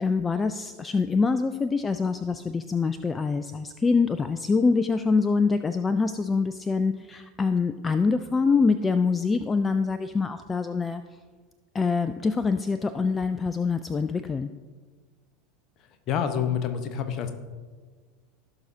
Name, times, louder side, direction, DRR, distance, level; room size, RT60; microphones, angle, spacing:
voice 1, 0.0-11.0 11.7-14.5, left 4 dB, 20° left, 11 dB, 0.3 m, -25 dB
voice 2, 16.1-17.3, left 8 dB, 40° left, 8 dB, 1.0 m, -27 dB
16.0 x 6.2 x 2.7 m, 1.5 s
figure-of-eight pair, 80°, 0 cm